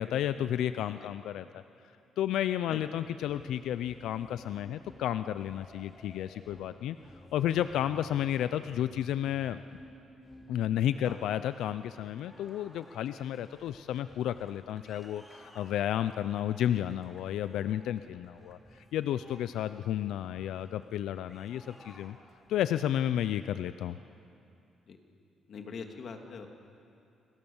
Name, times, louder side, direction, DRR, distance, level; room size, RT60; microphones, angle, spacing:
voice 1, 0.0-1.6 2.2-7.0 7.3-9.6 10.5-22.2 22.5-24.0, left 11 dB, 80° left, 12 dB, 0.6 m, -32 dB
sound 1, 3.1-22.7, equal, 5° left, 3.6 m, -56 dB
voice 2, 25.5-26.5, left 5 dB, 55° left, 4 dB, 2.6 m, -43 dB
29.0 x 22.0 x 7.2 m, 2.6 s
cardioid pair, 90°, 0 cm